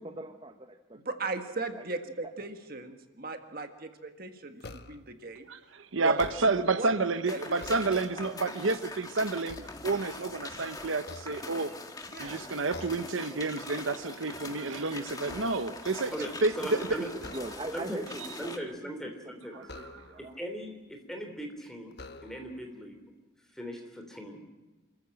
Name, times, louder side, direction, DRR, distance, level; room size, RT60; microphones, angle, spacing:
voice 1, 0.0-1.0 1.7-1.9 2.2-2.3 17.2-18.5 18.8-20.5, right 1 dB, 25° right, 6 dB, 1.0 m, -42 dB
voice 2, 0.9-5.5 6.0-6.2 6.7-8.3 12.1-12.4, right 3 dB, 45° right, 7 dB, 1.6 m, -38 dB
sound 1, 4.6-5.2 6.0-6.8 7.3-8.4 8.9-10.4 11.0-12.0 12.7-13.2 13.6-13.8 14.2-15.9 17.1-18.0 19.6-20.4 21.2-21.3 21.9-22.7, left 2 dB, 55° left, 1.2 m, -48 dB
voice 3, 5.5-11.7 12.2-16.1 16.4-16.8, right 3 dB, 75° right, 11 dB, 1.0 m, -30 dB
sound 2, 7.3-18.6, left 2 dB, 20° left, 1.5 m, -43 dB
voice 4, 16.1-17.1 17.7-18.0 18.4-19.6 20.2-21.9 22.2-23.0 23.5-24.4, equal, ahead, 3 dB, 3.3 m, -39 dB
27.0 x 14.5 x 9.0 m, 1.2 s
head